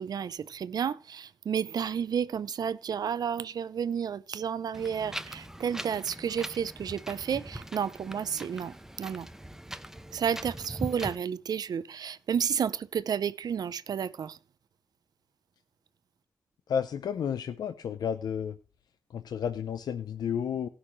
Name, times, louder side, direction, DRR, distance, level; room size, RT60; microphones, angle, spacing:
voice 1, 0.0-9.3 10.1-14.4, right 7 dB, 75° right, 0.6 m, -31 dB
Wind, 4.7-11.1, right 1 dB, 5° right, 0.9 m, -41 dB
voice 2, 16.7-18.6 19.1-20.7, left 8 dB, 85° left, 0.6 m, -31 dB
18.0 x 6.2 x 3.2 m
cardioid pair, 55°, 7 cm